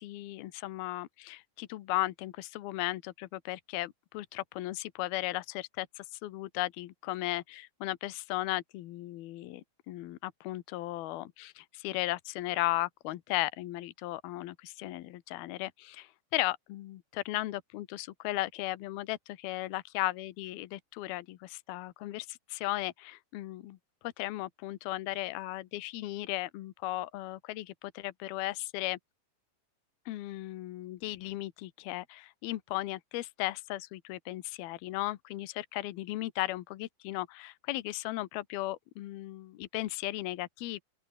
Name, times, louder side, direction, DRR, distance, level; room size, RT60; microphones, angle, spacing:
voice 1, 0.0-23.8 24.0-29.0 30.1-40.8, left 17 dB, 80° left, 2.9 m, -36 dB
open air
omnidirectional pair, 4.4 m